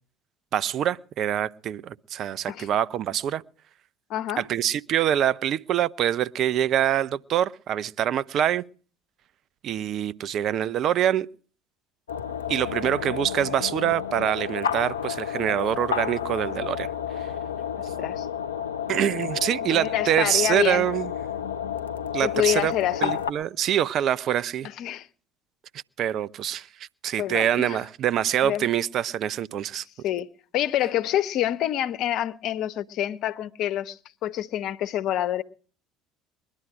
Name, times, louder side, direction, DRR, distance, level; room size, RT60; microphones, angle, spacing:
voice 1, 0.5-3.4 4.4-8.6 9.6-11.3 12.5-16.9 18.9-21.1 22.1-22.7 23.0-24.7 26.0-26.7 27.0-29.8, right 10 dB, 50° right, 0.7 m, -25 dB
voice 2, 4.1-4.4 17.8-18.3 19.7-20.9 22.2-23.1 24.6-25.1 27.2-27.8 28.4-28.7 30.0-30.3 30.5-35.4, left 12 dB, 55° left, 1.0 m, -27 dB
sound 1, 12.1-23.3, left 8 dB, 85° left, 0.7 m, -31 dB
21.5 x 11.5 x 4.9 m
hypercardioid pair, 65°, 0 cm